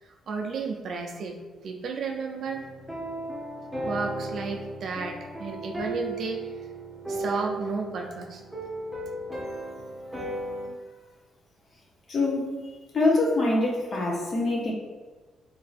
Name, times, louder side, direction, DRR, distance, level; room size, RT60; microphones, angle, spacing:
voice 1, 0.0-2.6 3.8-6.5 7.1-8.4, right 4 dB, 60° right, 2 dB, 0.4 m, -33 dB
sound 1, 2.4-10.7, right 2 dB, 5° right, 0.8 m, -35 dB
voice 2, 12.1-14.7, left 2 dB, 45° left, -1 dB, 0.7 m, -25 dB
3.1 x 2.6 x 2.4 m, 1.3 s
cardioid pair, 90°, 0 cm